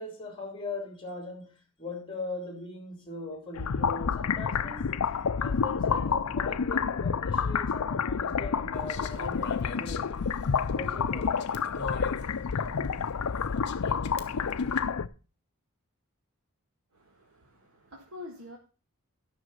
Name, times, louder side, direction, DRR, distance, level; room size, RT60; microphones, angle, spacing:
voice 1, 0.0-1.5 1.8-5.0 5.3-10.1 10.7-11.3, left 3 dB, 25° left, 3.3 m, -40 dB
sound 1, 3.6-15.1, left 6 dB, 75° left, 0.5 m, -29 dB
sound 2, 8.7-14.8, left 4 dB, 55° left, 1.2 m, -42 dB
voice 2, 16.9-18.6, left 2 dB, 70° right, 1.7 m, -46 dB
11.5 x 6.2 x 5.6 m
head